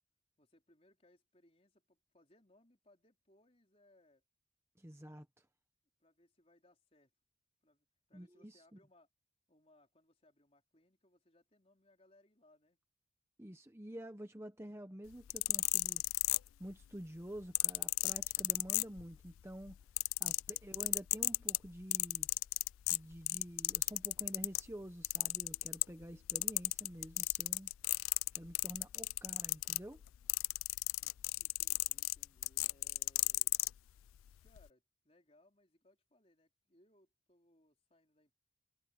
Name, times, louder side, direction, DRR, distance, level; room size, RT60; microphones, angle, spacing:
voice 1, 0.4-4.2 6.0-7.1 7.6-9.1 9.5-12.8 31.0-33.6 34.4-38.3, left 1 dB, 30° left, 4.3 m, -69 dB
voice 2, 4.8-5.5 8.1-8.8 13.4-16.0 16.6-19.8 20.2-22.3 22.9-27.7 28.3-30.0, equal, 15° right, 0.9 m, -49 dB
sound 1, 15.1-16.8 17.5-19.3 19.6-24.7 25.0-26.0 26.3-33.7 34.5-34.6, left 21 dB, 85° left, 0.3 m, -34 dB
head